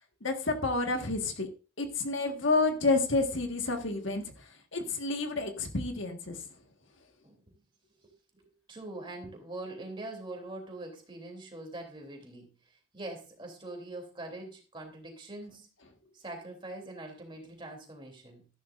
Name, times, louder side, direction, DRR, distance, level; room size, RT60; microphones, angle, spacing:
voice 1, 0.2-1.5 1.8-4.2 4.7-6.4, left 3 dB, 65° left, 1.6 m, -29 dB
voice 2, 7.2-7.6 8.0-8.1 8.7-15.7 16.1-18.5, right 2 dB, 25° right, 3.1 m, -43 dB
14.0 x 11.5 x 2.5 m
head